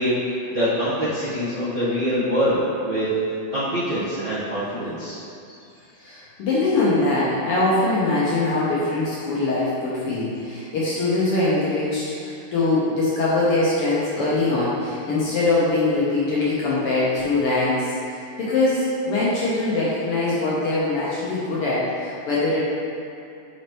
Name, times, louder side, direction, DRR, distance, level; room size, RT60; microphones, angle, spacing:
voice 1, 0.0-3.1 3.5-5.2, equal, 80° right, -12 dB, 0.6 m, -24 dB
voice 2, 6.0-22.6, left 2 dB, 70° left, -8 dB, 1.5 m, -22 dB
7.6 x 4.3 x 3.0 m, 2.7 s
omnidirectional pair, 3.4 m